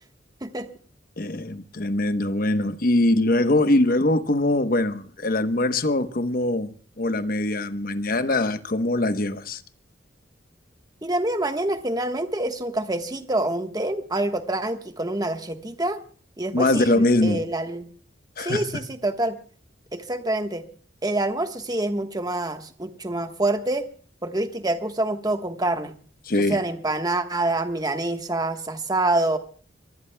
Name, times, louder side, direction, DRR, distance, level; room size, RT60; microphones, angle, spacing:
voice 1, 1.2-9.6 16.5-17.4 18.4-18.8 26.3-26.6, left 2 dB, 50° left, 1.0 m, -22 dB
voice 2, 11.0-16.0 16.4-17.9 18.4-19.4 19.9-20.6 21.0-23.9 24.2-25.9 26.5-29.4, right 2 dB, 20° right, 1.3 m, -26 dB
25.0 x 20.0 x 2.2 m
head